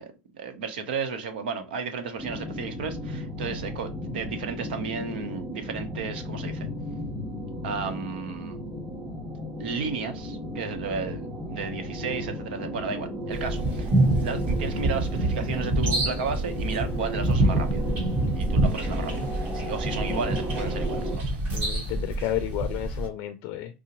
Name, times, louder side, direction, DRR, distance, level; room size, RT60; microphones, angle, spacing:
voice 1, 0.0-6.7 7.6-8.6 9.6-13.9 14.2-17.9 18.3-21.3, right 5 dB, 90° right, 0.8 m, -33 dB
sound 1, 2.2-21.1, left 1 dB, 15° right, 1.9 m, -35 dB
sound 2, 13.3-23.1, right 2 dB, 35° right, 1.5 m, -26 dB
voice 2, 21.5-23.8, left 13 dB, 55° left, 0.4 m, -32 dB
4.7 x 2.1 x 2.8 m
supercardioid pair, 130°, 5 cm